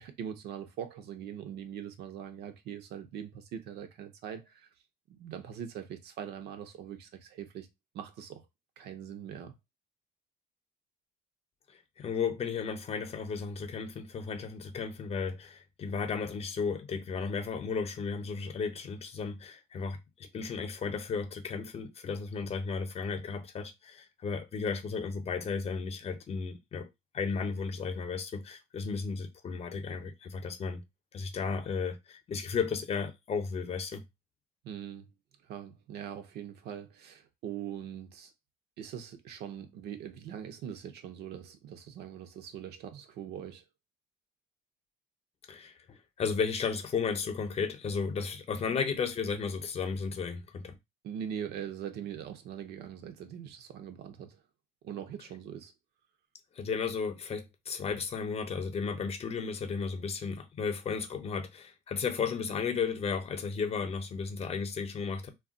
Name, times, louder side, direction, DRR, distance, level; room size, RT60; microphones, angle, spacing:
voice 1, 0.0-4.7 5.1-7.7 7.9-8.4 8.8-9.5 34.6-35.1 35.4-38.3 38.8-43.6 51.0-54.4 54.8-55.7, right 9 dB, 75° right, 0.7 m, -42 dB
voice 2, 12.0-26.9 27.1-30.8 31.1-34.0 45.5-50.8 56.5-65.3, left 5 dB, 35° left, 0.7 m, -34 dB
2.3 x 2.2 x 3.7 m
cardioid pair, 110°, 17 cm